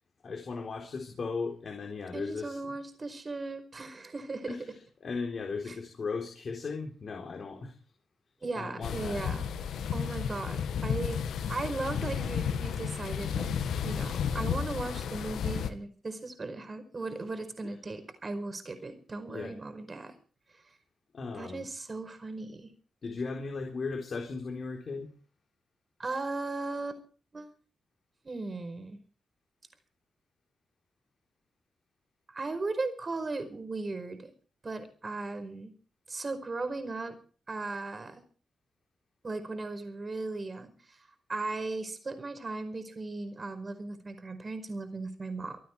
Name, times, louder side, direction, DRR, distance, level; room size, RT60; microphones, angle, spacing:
voice 1, 0.2-2.7 4.5-7.7 8.5-9.3 19.3-19.5 21.1-21.7 23.0-25.1, left 4 dB, 55° left, 2 dB, 4.0 m, -37 dB
voice 2, 2.1-4.6 5.7-5.8 8.4-9.5 9.9-11.2 11.5-13.6 13.8-20.1 21.3-22.7 26.0-27.0 27.3-27.5 28.2-29.0 32.3-34.3 34.6-35.7 36.1-37.1 37.5-38.2 39.2-41.0 41.3-45.6, right 3 dB, 40° right, 9 dB, 5.0 m, -37 dB
sound 1, 8.8-15.7, left 7 dB, 90° left, 1.5 m, -32 dB
26.0 x 9.3 x 4.7 m, 0.41 s
cardioid pair, 65°, 0 cm